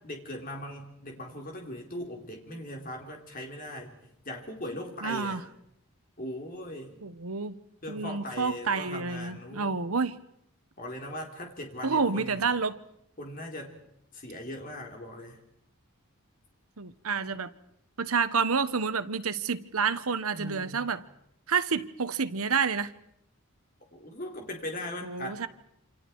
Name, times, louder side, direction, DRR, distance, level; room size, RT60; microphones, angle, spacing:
voice 1, 0.0-4.0 4.2-5.4 6.2-7.0 7.8-9.8 10.8-12.4 13.2-13.8 14.1-15.4 20.3-20.9 23.9-25.5, left 1 dB, 40° left, 1 dB, 4.1 m, -39 dB
voice 2, 5.0-5.4 7.0-7.6 7.9-10.2 11.8-12.8 16.8-17.5 18.0-21.0 21.5-22.9 25.0-25.5, right 5 dB, 80° right, 12 dB, 1.2 m, -29 dB
28.0 x 27.0 x 4.7 m, 0.78 s
head